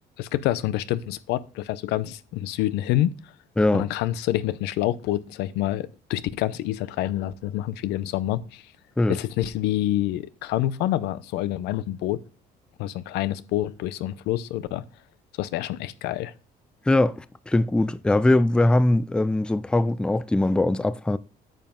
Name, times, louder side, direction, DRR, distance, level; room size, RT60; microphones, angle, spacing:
voice 1, 0.2-3.1 3.7-8.6 9.1-12.2 12.8-14.8 15.4-16.3, left 14 dB, 90° left, 0.6 m, -27 dB
voice 2, 3.6-3.9 9.0-9.2 16.9-21.2, left 2 dB, 5° left, 0.4 m, -21 dB
9.1 x 5.4 x 3.7 m
cardioid pair, 110°, 17 cm